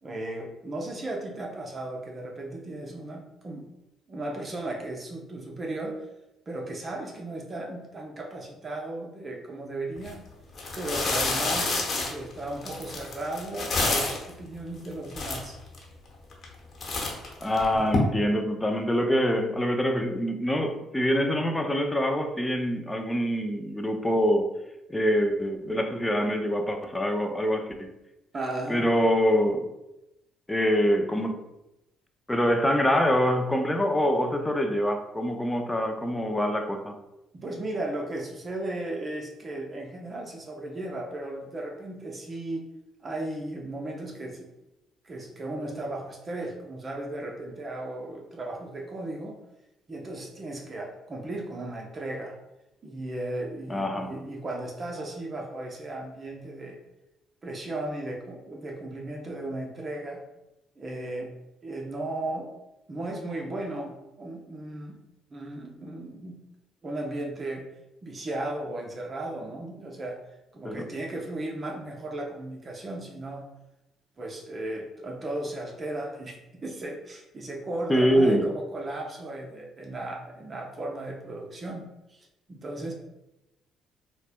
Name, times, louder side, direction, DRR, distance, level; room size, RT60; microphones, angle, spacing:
voice 1, 0.0-3.7 4.1-6.0 6.5-10.3 10.8-15.6 28.3-28.9 37.3-42.7 43.0-44.5 45.0-49.3 49.9-52.3 52.8-56.8 57.4-60.2 60.8-61.3 61.6-62.5 62.9-65.0 65.3-66.4 66.8-67.7 68.0-70.2 70.5-73.4 74.2-82.9, right 2 dB, 35° right, 0.6 m, -35 dB
sound 1, 10.0-10.1 10.6-14.3 14.9-15.0 15.1-15.8 16.3-16.6 16.8-18.0, left 3 dB, 50° left, 0.9 m, -29 dB
voice 2, 17.4-24.6 24.9-27.9 28.7-29.7 30.5-31.5 32.3-37.0 53.7-54.1 70.6-70.8 77.9-78.4, equal, 15° left, 0.5 m, -25 dB
4.1 x 2.1 x 2.2 m
hypercardioid pair, 55°, 0 cm